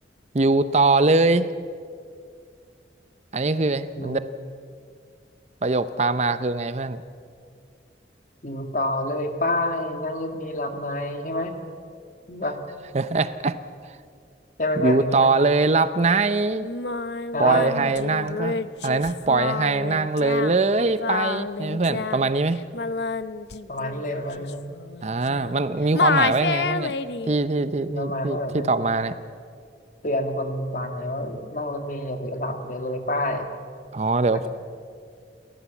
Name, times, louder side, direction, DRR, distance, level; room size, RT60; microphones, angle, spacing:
voice 1, 0.3-1.5 3.3-4.2 5.6-7.0 12.9-13.6 14.8-16.7 17.4-22.6 25.0-26.9 27.2-29.1 33.9-34.5, right 3 dB, 40° right, 13 dB, 0.6 m, -22 dB
voice 2, 8.4-11.6 12.3-12.6 14.6-15.3 17.3-17.8 23.7-24.6 27.9-28.8 30.0-33.5 34.3-34.5, left 1 dB, 45° left, 6 dB, 2.0 m, -28 dB
Singing, 16.6-25.6 25.9-27.3, left 4 dB, 70° left, 0.7 m, -29 dB
28.5 x 14.5 x 7.2 m, 2.2 s
head